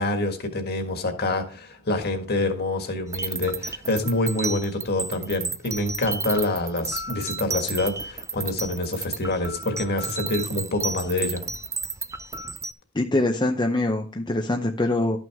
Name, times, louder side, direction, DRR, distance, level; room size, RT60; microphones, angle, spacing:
voice 1, 0.0-11.4, left 2 dB, 45° left, 6 dB, 1.7 m, -26 dB
sound 1, 3.1-12.7, right 4 dB, 15° right, 0.4 m, -32 dB
voice 2, 12.9-15.2, left 2 dB, 20° left, 2 dB, 0.7 m, -23 dB
12.5 x 6.1 x 3.5 m, 0.38 s
head